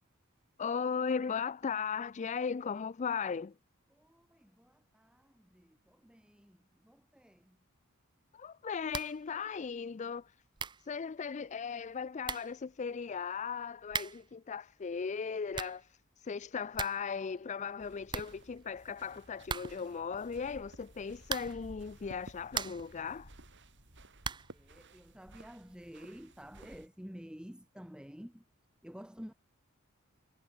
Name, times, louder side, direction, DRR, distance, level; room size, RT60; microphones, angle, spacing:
voice 1, 0.6-3.5 8.3-10.3 10.8-23.3, left 6 dB, 35° left, 0.4 m, -37 dB
voice 2, 3.9-7.6 24.5-28.4 28.8-29.3, equal, 5° right, 1.1 m, -51 dB
sound 1, 8.9-9.3 9.5-9.6 10.2-10.3 10.6-10.9 11.8-11.9 12.2-12.6 13.9-14.3 15.3-15.9 16.3-16.4 16.5-17.1 17.4-17.5 17.7-17.8 18.1-18.9 19.4-20.0 21.2-21.7 22.2-23.0 24.2-24.6, right 6 dB, 20° right, 0.5 m, -39 dB
sound 2, 17.8-26.9, right 1 dB, 55° right, 6.4 m, -55 dB
head